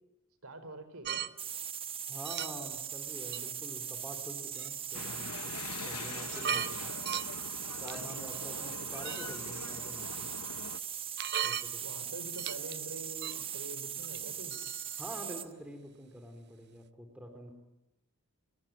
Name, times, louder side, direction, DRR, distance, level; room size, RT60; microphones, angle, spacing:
voice 1, 0.4-1.2 9.5-9.6 11.8-14.6, right 2 dB, 70° right, 11 dB, 4.8 m, -45 dB
sound 1, 1.0-1.3 2.3-2.7 3.3-3.4 4.6-4.7 5.6-5.7 6.1-6.7 7.0-7.3 7.9-8.4 9.0-9.4 11.2-11.7 12.3-12.8 13.2-13.4 14.0-14.2 14.5-15.0, right 9 dB, 50° right, 0.9 m, -37 dB
sound 2, 1.4-15.5, right 8 dB, 25° right, 1.0 m, -40 dB
voice 2, 2.1-5.6 5.8-7.0 7.8-10.3 11.4-11.8 15.0-17.5, right 1 dB, 5° right, 4 dB, 3.8 m, -46 dB
sound 3, 4.9-10.8, left 5 dB, 80° left, 0.9 m, -44 dB
25.5 x 24.0 x 9.2 m, 0.92 s
head